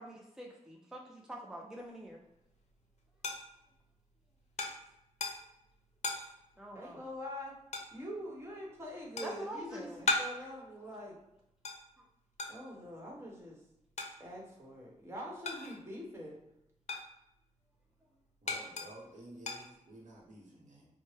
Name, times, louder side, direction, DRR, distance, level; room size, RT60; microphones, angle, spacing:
voice 1, 0.0-2.2 6.6-7.0 9.2-10.1 12.0-12.1, right 1 dB, 5° right, -1 dB, 0.5 m, -46 dB
sound 1, 2.2-16.0 16.3-20.3, left 2 dB, 60° left, 0.6 m, -41 dB
voice 2, 6.7-7.6 7.9-11.2 12.5-13.6 14.2-16.4, equal, 20° right, -3 dB, 1.1 m, -44 dB
voice 3, 18.4-20.9, right 1 dB, 80° right, -3 dB, 1.0 m, -52 dB
4.3 x 2.1 x 3.2 m, 0.84 s
wide cardioid pair, 105°, 13 cm